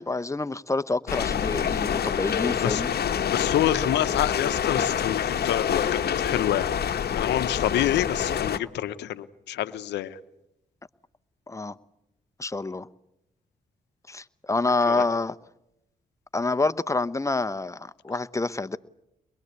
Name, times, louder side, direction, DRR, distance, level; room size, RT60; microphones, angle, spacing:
voice 1, 0.0-2.9 11.5-11.8 12.4-12.9 14.1-15.3 16.3-18.8, left 3 dB, 15° left, 11 dB, 0.9 m, -27 dB
sound 1, 1.1-8.6, left 8 dB, 65° left, 1.0 m, -27 dB
voice 2, 3.3-6.7 7.1-10.2 14.9-15.0, left 12 dB, 85° left, 13 dB, 0.8 m, -27 dB
22.5 x 22.0 x 8.2 m, 0.85 s
supercardioid pair, 40°, 18 cm